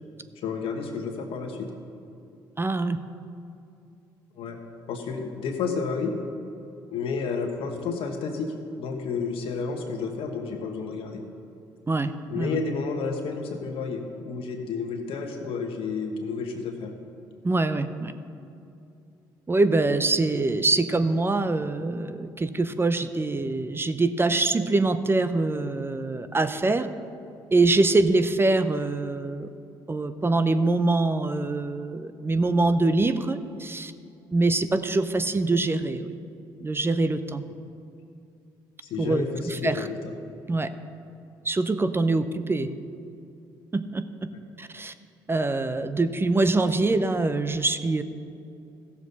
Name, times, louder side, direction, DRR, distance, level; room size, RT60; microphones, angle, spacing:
voice 1, 0.4-1.7 4.4-4.6 4.9-6.2 6.9-11.2 12.3-16.9 38.8-39.9, left 5 dB, 65° left, 4 dB, 1.4 m, -31 dB
voice 2, 2.6-3.0 11.9-12.6 17.4-18.1 19.5-26.9 27.5-29.5 29.9-33.9 34.3-36.2 36.6-37.4 39.0-39.9 40.5-40.7 41.4-42.7 43.7-44.3 44.6-44.9 45.3-48.0, right 2 dB, 25° right, 11 dB, 0.6 m, -24 dB
15.0 x 7.1 x 4.1 m, 2.6 s
hypercardioid pair, 50°, 10 cm